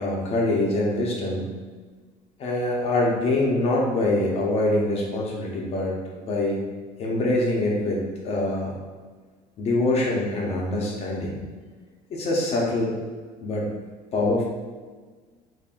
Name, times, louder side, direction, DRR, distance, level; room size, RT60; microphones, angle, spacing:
voice 1, 0.0-1.4 2.4-5.9 6.2-6.6 7.0-8.7 9.6-11.4 12.1-13.0 13.4-13.7 14.1-14.4, left 2 dB, 45° left, -3 dB, 0.7 m, -24 dB
5.2 x 2.6 x 2.5 m, 1.4 s
cardioid pair, 140°, 15 cm